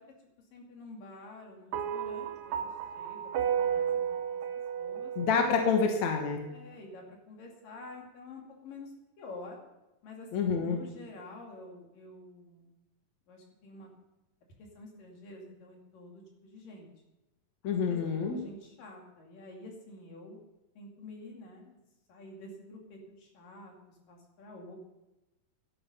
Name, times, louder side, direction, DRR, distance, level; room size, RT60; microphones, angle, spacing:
voice 1, 0.5-2.5 3.0-4.1 4.7-5.1 6.5-8.9 9.2-9.6 10.0-12.7 13.3-13.9 14.8-16.9 17.6-20.4 20.8-21.8 22.1-23.7 24.1-24.8, left 2 dB, 80° left, 0 dB, 4.3 m, -48 dB
sound 1, 1.7-6.2, right 8 dB, 90° right, 2.6 m, -33 dB
voice 2, 5.2-6.4 10.3-10.8 17.6-18.4, left 5 dB, 60° left, 3 dB, 2.6 m, -27 dB
13.0 x 11.5 x 5.6 m, 0.99 s
omnidirectional pair, 3.9 m